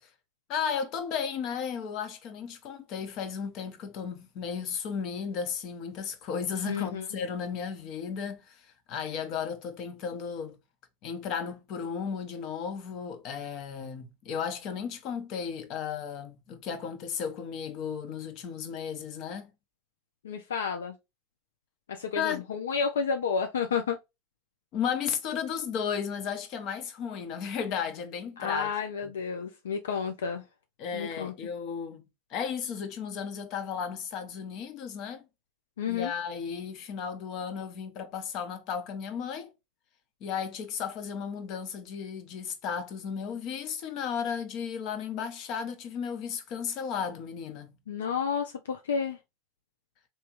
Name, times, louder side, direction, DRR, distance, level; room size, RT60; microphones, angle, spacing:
voice 1, 0.5-10.6 11.0-19.5 22.1-22.4 24.7-28.7 29.0-29.1 30.8-32.0 32.3-35.3 35.9-39.5 40.2-47.7, left 7 dB, 55° left, 0.9 m, -34 dB
voice 2, 6.7-7.0 20.2-20.9 21.9-24.0 28.4-30.4 30.9-31.3 35.8-36.1 47.9-49.2, left 6 dB, 85° left, 0.4 m, -31 dB
3.3 x 3.0 x 3.0 m
hypercardioid pair, 90°, 0 cm